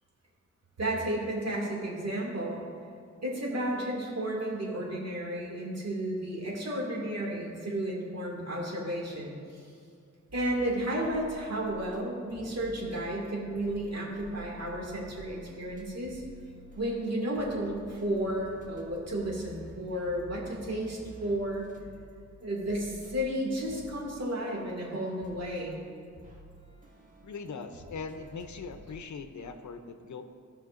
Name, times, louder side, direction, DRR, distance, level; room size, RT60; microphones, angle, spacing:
voice 1, 0.8-2.6 3.2-9.7 10.3-16.2 16.8-21.7 22.4-25.8, right 1 dB, 60° right, -3 dB, 2.2 m, -33 dB
sound 1, 10.3-12.0 12.3-29.0, right 1 dB, 25° right, 1.4 m, -51 dB
voice 2, 27.2-30.2, left 4 dB, 75° left, 8 dB, 0.6 m, -41 dB
17.0 x 5.7 x 2.5 m, 2.3 s
wide cardioid pair, 110°, 30 cm